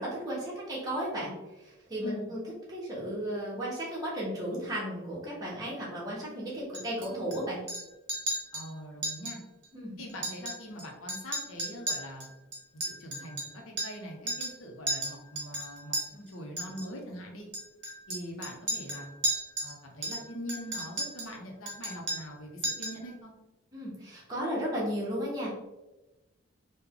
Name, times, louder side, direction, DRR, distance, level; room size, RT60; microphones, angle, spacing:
voice 1, 0.0-1.3 1.6-2.4 2.7-7.6 9.7-10.0 23.7-25.5, equal, 20° right, -6 dB, 1.0 m, -34 dB
voice 2, 2.0-2.3 8.5-9.4 10.0-12.3 12.7-17.5 18.1-19.1 19.6-23.3, equal, 80° left, 0 dB, 0.8 m, -42 dB
Chink clink, 6.7-7.4 7.7-7.8 8.1-8.7 9.0-9.4 9.6-9.7 10.1-10.8 11.1-14.0 14.3-14.6 14.9-16.0 16.6-16.9 17.5-19.7 20.0-21.3 21.7-22.4 22.6-23.0, right 1 dB, 55° right, 0.9 m, -34 dB
3.3 x 2.3 x 3.6 m, 1.0 s
head